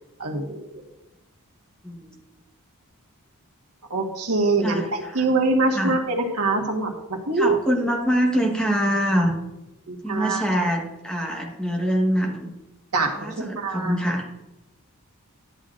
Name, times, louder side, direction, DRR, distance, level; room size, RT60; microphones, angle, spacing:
voice 1, 0.2-0.8 3.9-7.6 9.9-10.5 12.9-13.9, right 3 dB, 90° right, 1 dB, 1.4 m, -24 dB
voice 2, 4.6-5.2 5.7-6.0 7.4-9.4 10.0-12.5 13.1-14.3, equal, 5° left, 0 dB, 1.2 m, -24 dB
11.5 x 7.7 x 2.5 m, 0.98 s
head